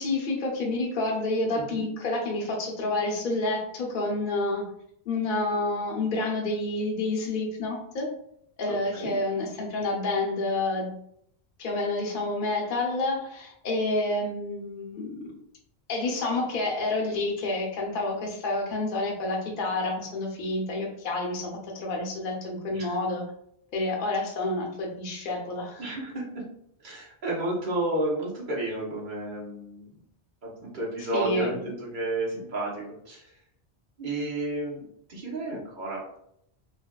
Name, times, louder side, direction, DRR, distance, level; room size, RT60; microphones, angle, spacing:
voice 1, 0.0-4.7 5.1-8.1 8.6-10.9 11.6-15.3 15.9-23.3 23.7-25.9 31.1-31.5, left 2 dB, 55° left, 0 dB, 0.8 m, -29 dB
voice 2, 8.7-9.1 22.7-22.9 25.8-26.2 26.8-29.9 30.4-33.3 34.0-36.2, right 2 dB, 50° right, -4 dB, 1.0 m, -32 dB
4.0 x 2.2 x 2.2 m, 0.71 s
omnidirectional pair, 1.1 m